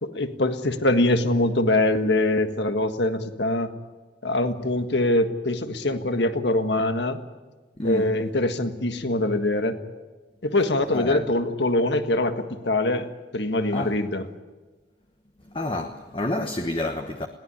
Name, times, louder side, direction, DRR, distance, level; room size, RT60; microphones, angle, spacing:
voice 1, 0.0-3.7 4.2-7.2 7.8-9.8 10.4-13.1 13.3-14.3, left 1 dB, 70° left, 1.6 m, -23 dB
voice 2, 7.8-8.1 10.9-11.3 13.7-14.0 15.5-17.3, left 1 dB, 30° left, 1.2 m, -29 dB
21.5 x 17.5 x 9.9 m
head